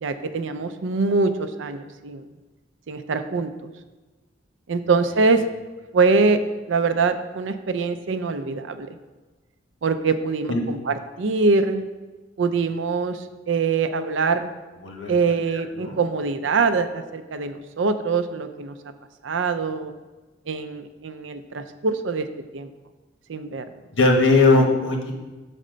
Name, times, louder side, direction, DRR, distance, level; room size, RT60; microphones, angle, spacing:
voice 1, 0.0-2.2 2.9-3.7 4.7-5.4 5.9-6.4 6.7-9.0 9.8-11.9 12.4-14.5 15.1-18.8 19.2-19.9 20.5-22.3 22.5-22.7 23.3-23.6, right 4 dB, 90° right, 10 dB, 0.5 m, -23 dB
voice 2, 23.9-25.1, left 3 dB, 85° left, 2 dB, 1.2 m, -18 dB
6.6 x 4.2 x 5.0 m, 1.2 s
head